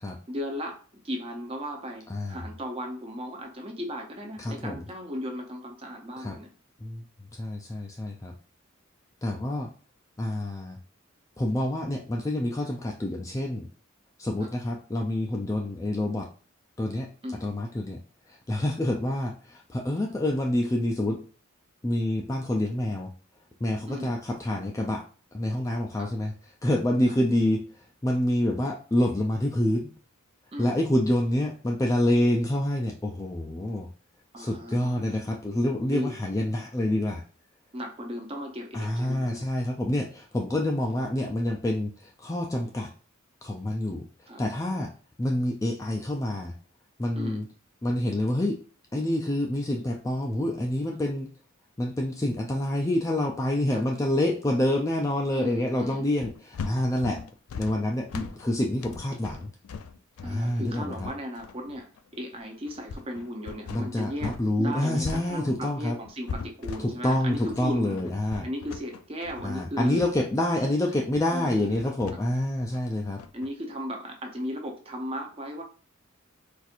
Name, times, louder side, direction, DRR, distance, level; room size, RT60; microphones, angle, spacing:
voice 1, 0.3-6.5 14.4-14.5 17.2-17.4 23.9-24.1 26.0-26.1 27.1-27.2 30.5-30.7 34.3-35.3 35.9-36.1 37.7-39.5 44.3-44.4 47.2-47.4 53.7-53.8 55.3-56.0 60.2-68.0 68.4-70.0 71.3-71.7 73.3-75.6, equal, 25° right, 2 dB, 0.6 m, -36 dB
voice 2, 2.1-2.4 4.4-4.8 6.2-6.4 6.8-7.0 7.4-8.3 9.2-9.7 10.2-10.8 11.4-13.7 14.2-16.3 16.8-17.1 17.4-18.0 18.3-21.2 21.8-23.1 23.6-25.0 25.3-26.3 26.6-27.6 28.0-29.9 30.6-33.9 34.4-37.2 38.7-42.9 43.4-44.0 44.4-44.9 45.2-46.5 47.0-47.5 47.8-48.6 48.9-51.3 51.8-57.2 57.6-59.5 60.2-61.1 63.7-66.0 66.8-68.5 69.4-73.2, left 1 dB, 15° left, 0 dB, 0.3 m, -27 dB
sound 1, 56.2-64.5 64.7-73.5, left 5 dB, 90° left, 0.4 m, -40 dB
4.1 x 2.5 x 2.5 m, 0.38 s
head